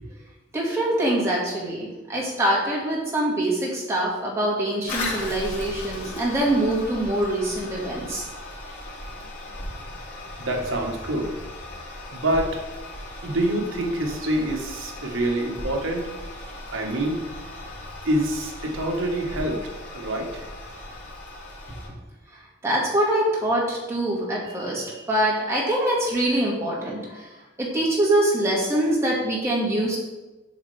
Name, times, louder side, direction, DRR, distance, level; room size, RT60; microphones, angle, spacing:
voice 1, 0.5-8.2 22.6-27.3 27.6-30.0, right 1 dB, 15° right, -5 dB, 1.7 m, -24 dB
Toilet flush, 4.9-21.9, left 1 dB, 90° left, 2.3 m, -37 dB
voice 2, 10.4-11.3 12.1-12.6 13.2-16.1 16.7-17.2 18.0-20.5, right 1 dB, 65° right, 1 dB, 1.2 m, -26 dB
8.2 x 5.5 x 3.3 m, 1.1 s
head